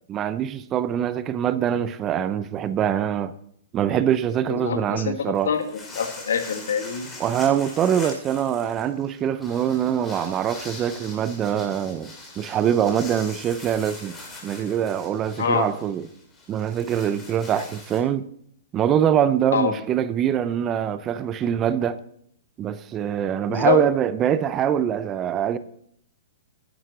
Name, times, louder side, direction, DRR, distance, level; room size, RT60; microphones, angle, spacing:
voice 1, 0.1-3.3 3.7-5.5 7.2-14.2 14.4-16.1 16.5-18.2 18.7-22.0 22.6-25.6, right 9 dB, 20° right, 0.5 m, -24 dB
voice 2, 4.5-5.2 5.4-7.1 15.4-15.7 19.5-19.8 23.5-23.8, left 7 dB, 85° left, 1.8 m, -25 dB
sound 1, 5.3-18.0, left 2 dB, 10° left, 2.5 m, -42 dB
10.0 x 7.8 x 6.6 m
hypercardioid pair, 155°, 0 cm